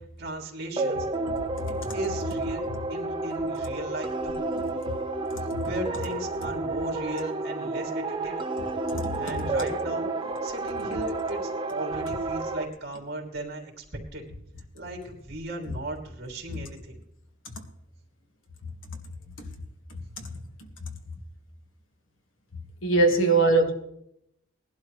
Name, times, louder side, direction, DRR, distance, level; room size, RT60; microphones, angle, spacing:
voice 1, 0.2-1.1 1.9-2.6 2.9-4.4 5.6-8.4 9.2-10.1 10.4-13.8 14.1-14.2 14.7-17.0, right 1 dB, 55° right, 2.9 m, -36 dB
sound 1, 0.8-12.7, right 3 dB, 25° right, 0.9 m, -31 dB
voice 2, 8.9-9.4 22.8-23.7, right 3 dB, 85° left, 1.8 m, -22 dB
19.5 x 11.5 x 3.2 m
head